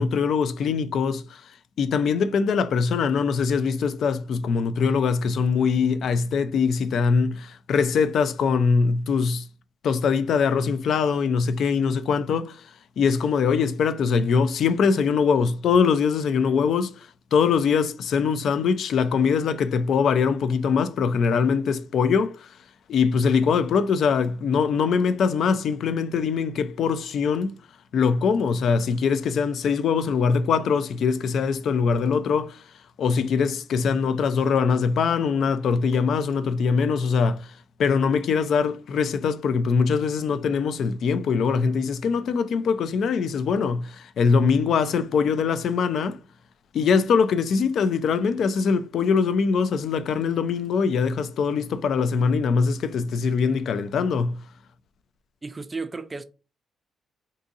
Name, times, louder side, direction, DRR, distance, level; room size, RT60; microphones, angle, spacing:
voice 1, 0.0-1.4 1.8-9.4 9.8-12.6 13.0-22.5 22.9-27.6 27.9-32.6 33.0-37.5 37.8-46.2 46.7-54.4, left 5 dB, 65° left, 0.3 m, -22 dB
voice 2, 55.4-56.2, right 4 dB, 20° right, 0.4 m, -33 dB
2.7 x 2.6 x 3.6 m
cardioid pair, 90°, 0 cm